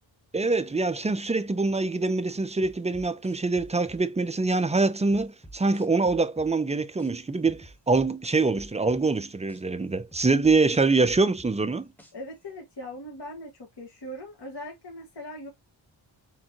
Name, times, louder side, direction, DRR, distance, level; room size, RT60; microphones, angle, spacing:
voice 1, 0.3-11.9, right 3 dB, 15° right, 0.4 m, -24 dB
sound 1, 2.6-4.6 5.1-7.1 7.5-9.6 10.1-12.4, right 1 dB, 5° left, 1.2 m, -48 dB
voice 2, 12.1-15.5, left 1 dB, 60° left, 1.8 m, -40 dB
4.3 x 3.6 x 2.9 m
cardioid pair, 75°, 47 cm